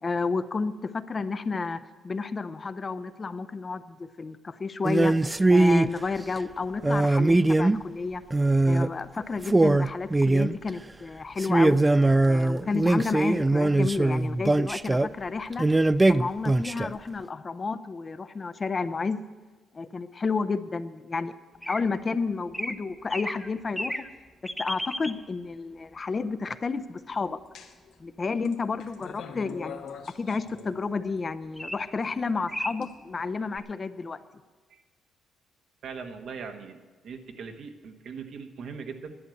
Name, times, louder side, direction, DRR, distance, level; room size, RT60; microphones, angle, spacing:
voice 1, 0.0-5.1 5.5-8.2 8.6-11.8 12.2-15.7 16.1-19.2 19.7-21.4 21.7-24.1 24.4-27.4 28.0-29.8 30.1-34.2, left 4 dB, 35° left, 12 dB, 0.6 m, -31 dB
sound 1, 4.8-5.9 6.8-7.9 8.3-8.9 9.2-9.3 9.4-10.7 11.4-15.1 15.6-16.9, right 2 dB, 15° right, 0.3 m, -21 dB
sound 2, 21.6-21.8 22.5-22.7 23.1-23.5 23.8-24.1 24.4-25.1 31.6-31.8 32.2-32.3 32.5-32.7 33.5-33.6, equal, ahead, 0.8 m, -33 dB
sound 3, 27.5-27.9 28.4-31.1 32.0-32.8, left 6 dB, 80° left, 1.3 m, -43 dB
voice 2, 35.8-39.2, right 5 dB, 70° right, 5 dB, 1.3 m, -40 dB
11.0 x 9.2 x 7.7 m, 1.3 s
cardioid pair, 90°, 0 cm